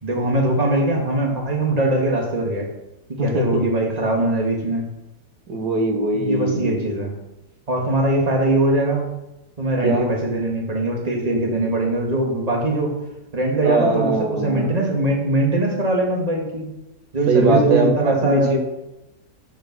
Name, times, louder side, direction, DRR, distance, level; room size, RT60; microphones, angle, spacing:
voice 1, 0.0-2.7 3.2-4.8 6.1-7.1 7.7-9.1 9.6-13.0 13.3-16.7 17.1-18.5, right 1 dB, 25° right, 0 dB, 1.9 m, -21 dB
voice 2, 5.5-6.8 9.8-10.1 13.6-14.7 17.3-18.6, right 2 dB, 85° right, 2 dB, 2.0 m, -21 dB
7.8 x 6.7 x 6.1 m, 0.94 s
omnidirectional pair, 1.7 m